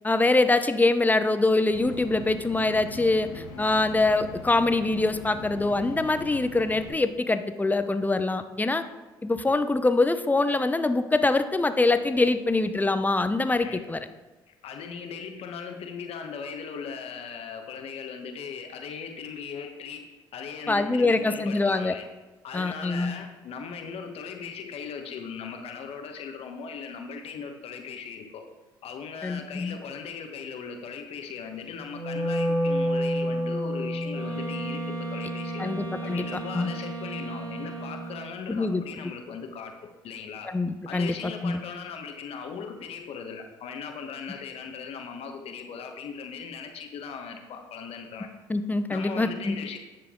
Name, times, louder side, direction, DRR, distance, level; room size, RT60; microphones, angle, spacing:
voice 1, 0.0-8.8 9.2-14.1 20.7-22.0 22.5-23.1 29.2-29.8 35.6-36.2 36.5-36.7 38.5-38.8 40.5-41.1 41.4-41.6 48.5-49.6, left 2 dB, 15° left, 10 dB, 0.7 m, -24 dB
sound 1, 1.7-6.9, left 3 dB, 80° left, 1.2 m, -42 dB
voice 2, 14.6-22.0 22.4-28.5 28.8-35.7 36.0-40.5 40.8-48.3 48.9-49.8, left 6 dB, 60° left, 5 dB, 1.3 m, -38 dB
Wind instrument woodwind instrument, 31.8-38.0, equal, 35° right, 2.4 m, -30 dB
Wind instrument woodwind instrument 2, 34.1-38.4, right 7 dB, 60° right, 2.9 m, -38 dB
10.0 x 6.8 x 3.8 m, 1.2 s
hypercardioid pair, 55°, 12 cm